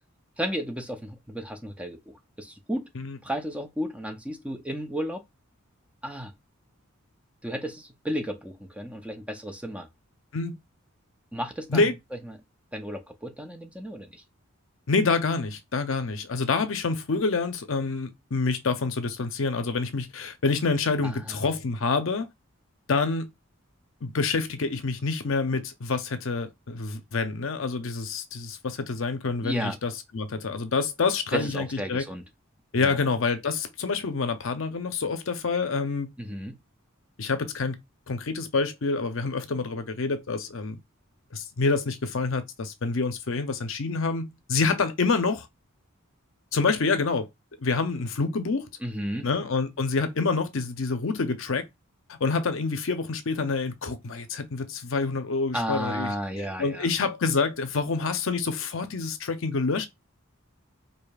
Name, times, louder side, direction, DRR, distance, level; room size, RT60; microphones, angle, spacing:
voice 1, 0.4-2.9 3.2-5.2 6.0-6.3 7.4-9.9 11.3-11.9 12.2-12.4 12.7-14.2 21.0-21.4 29.4-29.8 31.3-32.2 32.8-33.0 36.2-36.6 48.8-49.3 55.5-56.9, equal, 5° right, 0.6 m, -33 dB
voice 2, 14.9-22.3 22.9-23.3 24.0-32.0 32.7-36.1 37.2-37.8 38.1-40.8 41.3-45.5 46.5-47.3 47.6-48.7 49.2-51.7 52.1-56.1 56.6-59.9, left 4 dB, 65° left, 0.6 m, -27 dB
4.9 x 2.7 x 2.3 m
head